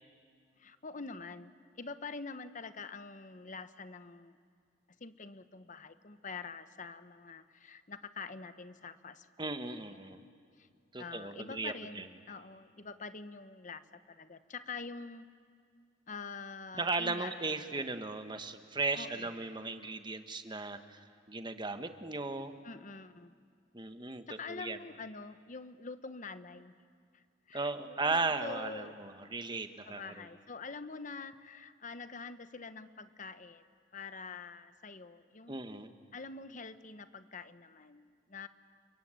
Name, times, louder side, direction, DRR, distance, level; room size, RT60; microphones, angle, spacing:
voice 1, 0.6-1.5 1.8-4.4 5.0-9.5 10.0-10.3 10.6-10.7 11.0-15.3 16.1-17.3 18.9-19.4 22.6-23.3 24.3-26.7 27.1-29.3 29.9-33.7 33.9-35.6 36.1-38.5, left 4 dB, 40° left, 11 dB, 1.0 m, -46 dB
voice 2, 9.4-10.2 10.9-12.1 16.8-22.5 23.7-24.8 27.5-30.3 35.5-35.9, right 3 dB, 25° right, 8 dB, 1.3 m, -36 dB
29.5 x 22.5 x 9.0 m, 2.2 s
head